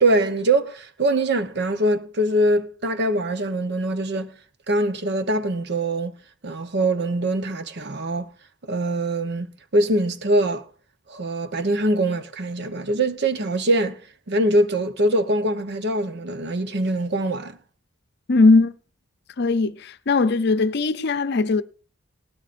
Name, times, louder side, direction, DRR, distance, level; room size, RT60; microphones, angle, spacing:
voice 1, 0.0-4.3 4.7-6.1 6.4-8.3 8.7-9.5 9.7-10.6 11.1-14.0 14.3-17.6, right 1 dB, 60° right, 1.0 m, -23 dB
voice 2, 18.3-18.7 19.4-21.6, left 3 dB, 55° left, 0.6 m, -19 dB
18.5 x 12.5 x 2.5 m
head